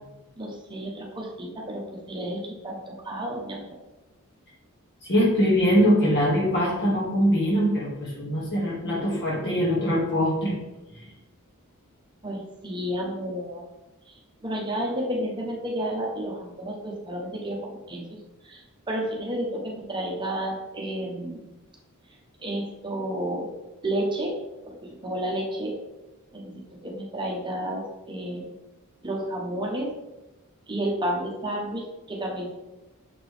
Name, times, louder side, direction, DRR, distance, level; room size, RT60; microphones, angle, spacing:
voice 1, 0.4-3.8 12.2-13.6 14.1-21.4 22.4-23.5 23.8-24.4 24.7-25.8 26.3-28.4 29.0-29.9 30.7-32.5, right 1 dB, 20° right, -1 dB, 0.9 m, -31 dB
voice 2, 5.0-10.5, equal, 55° left, -4 dB, 2.1 m, -22 dB
6.8 x 4.4 x 3.4 m, 1.0 s
head